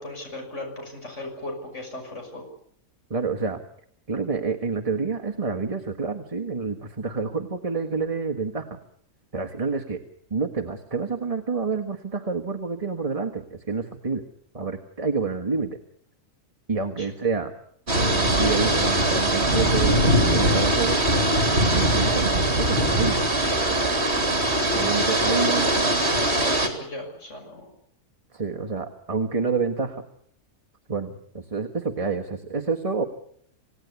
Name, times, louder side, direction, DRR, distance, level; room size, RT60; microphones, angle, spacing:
voice 1, 0.0-2.4 17.0-17.1 25.3-27.7, left 1 dB, 50° left, 2 dB, 6.5 m, -37 dB
voice 2, 3.1-3.6 4.1-8.8 9.3-10.0 10.3-14.2 14.5-15.8 16.7-17.5 17.9-21.0 21.7-23.2 23.5-23.8 24.7-25.7 28.3-30.0 30.9-33.0, right 4 dB, 25° right, 3 dB, 1.6 m, -28 dB
sound 1, 17.9-26.7, right 1 dB, 45° right, 3.6 m, -21 dB
28.0 x 18.0 x 8.4 m, 0.65 s
omnidirectional pair, 1.6 m